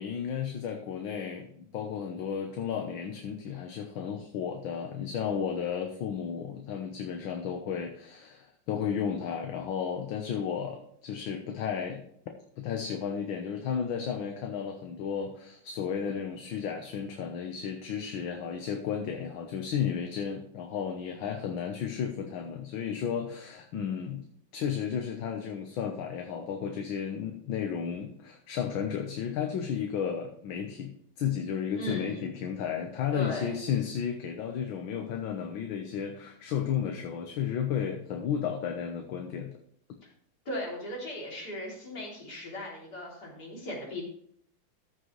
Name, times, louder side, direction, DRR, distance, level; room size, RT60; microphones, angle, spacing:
voice 1, 0.0-12.0 12.6-30.9 31.2-39.5, left 7 dB, 70° left, 4 dB, 1.7 m, -33 dB
voice 2, 31.8-32.3 33.1-33.5 40.5-44.0, left 1 dB, 50° left, -3 dB, 3.9 m, -37 dB
14.0 x 6.5 x 3.2 m, 0.66 s
omnidirectional pair, 2.3 m